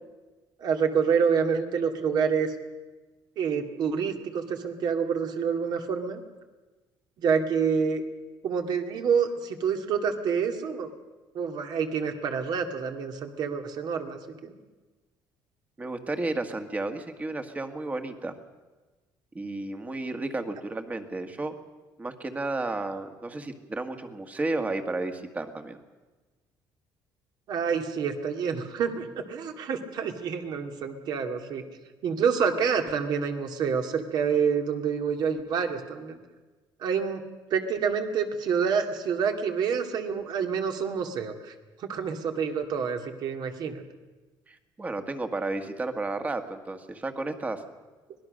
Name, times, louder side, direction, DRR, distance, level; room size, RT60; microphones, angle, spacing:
voice 1, 0.6-2.6 3.4-6.2 7.2-8.0 8.4-10.9 11.3-14.5 27.5-31.6 32.0-36.2 36.8-37.2 37.5-41.5 41.8-43.8, right 6 dB, 55° right, 5 dB, 2.5 m, -27 dB
voice 2, 15.8-18.3 19.3-21.6 22.0-25.8 44.5-47.6, right 2 dB, 20° right, 7 dB, 1.8 m, -32 dB
25.0 x 19.0 x 6.5 m, 1.2 s
cardioid pair, 140°, 8 cm